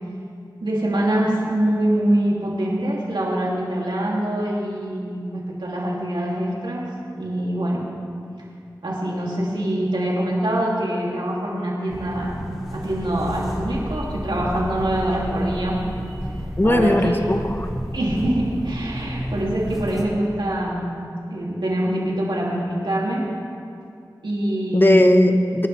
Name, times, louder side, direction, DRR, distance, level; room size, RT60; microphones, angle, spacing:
voice 1, 0.6-7.9 8.8-12.4 12.7-15.8 16.6-17.2 17.9-21.0 21.3-23.3 24.2-25.1, right 1 dB, 80° right, -4 dB, 2.9 m, -24 dB
sound 1, 11.9-20.1, equal, ahead, 2.9 m, -31 dB
voice 2, 16.6-17.7 24.7-25.7, left 1 dB, 25° left, 5 dB, 1.2 m, -17 dB
24.5 x 11.0 x 3.5 m, 2.4 s
wide cardioid pair, 45°, 8 cm